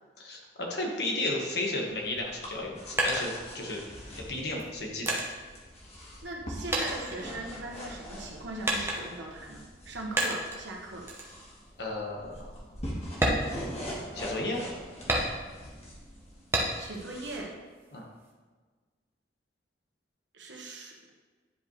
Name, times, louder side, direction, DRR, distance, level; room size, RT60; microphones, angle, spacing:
voice 1, 0.2-3.8 4.2-5.2 11.8-12.5 14.1-14.6 17.9-18.0, left 2 dB, 65° left, -1 dB, 1.4 m, -33 dB
sound 1, 1.9-17.4, equal, 35° left, 1.5 m, -43 dB
sound 2, 2.4-3.9 4.6-6.4 6.7-7.9 8.6-9.3 10.2-10.6 11.1-11.3 11.8-11.9 12.3-12.5 13.1-14.3 15.1-15.7 16.5-17.1 17.5-18.3, right 1 dB, 15° right, 0.9 m, -31 dB
voice 2, 6.2-11.1 16.8-17.5 20.3-21.1, right 2 dB, 85° right, -1 dB, 1.3 m, -40 dB
10.0 x 5.0 x 3.3 m, 1.4 s
head